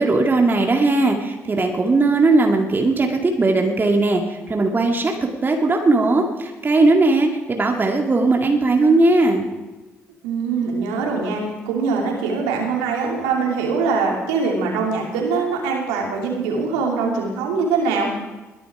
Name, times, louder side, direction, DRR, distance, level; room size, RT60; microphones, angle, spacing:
voice 1, 0.0-9.5, right 2 dB, 30° right, 2 dB, 2.0 m, -18 dB
voice 2, 10.2-18.1, right 4 dB, 70° right, 0 dB, 2.8 m, -23 dB
21.5 x 11.0 x 4.8 m, 1.1 s
figure-of-eight pair, 40°, 7 cm